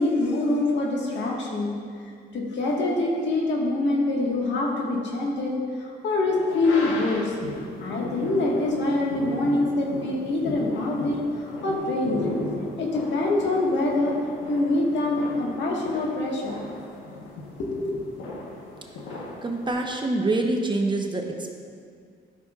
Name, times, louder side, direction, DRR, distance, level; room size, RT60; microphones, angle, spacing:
voice 1, 0.0-1.7 2.3-7.3 7.8-12.3 12.8-14.1 14.5-16.6 17.6-17.9, left 2 dB, 65° left, -2 dB, 1.6 m, -25 dB
sound 1, 6.5-19.7, left 2 dB, 90° left, 1.3 m, -36 dB
voice 2, 19.4-21.2, right 2 dB, 25° right, 2 dB, 0.9 m, -25 dB
12.5 x 6.3 x 2.4 m, 2.2 s
cardioid pair, 90°, 20 cm